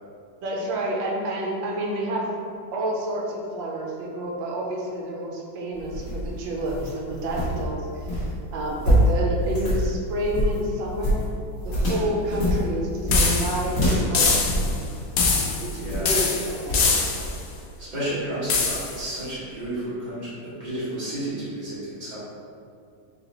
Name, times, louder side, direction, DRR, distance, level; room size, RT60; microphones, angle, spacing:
voice 1, 0.4-2.3 2.7-8.2 8.5-11.2 11.6-14.4 15.6-16.8, right 1 dB, 80° right, -2 dB, 1.4 m, -29 dB
sound 1, 5.7-15.4 15.9-16.2 16.7-16.9, equal, 45° left, 1.5 m, -25 dB
sound 2, 13.1-13.7 14.1-14.8 15.2-15.8 16.1-17.4 18.5-19.0, left 4 dB, 75° left, 0.8 m, -23 dB
voice 2, 15.7-16.4 17.8-22.2, right 1 dB, 25° right, -11 dB, 1.4 m, -32 dB
4.0 x 2.8 x 4.0 m, 2.4 s
omnidirectional pair, 2.1 m